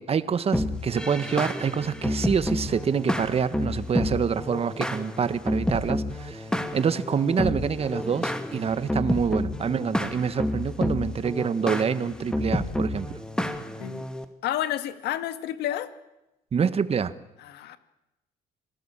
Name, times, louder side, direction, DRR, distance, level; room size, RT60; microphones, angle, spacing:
voice 1, 0.0-6.5 6.7-13.2 16.5-17.1, right 6 dB, 35° right, 1.5 m, -26 dB
sound 1, 0.5-14.2, left 1 dB, 5° left, 2.2 m, -30 dB
voice 2, 14.4-15.9 17.4-17.8, left 12 dB, 80° left, 1.9 m, -30 dB
27.0 x 18.5 x 8.9 m
cardioid pair, 110°, 17 cm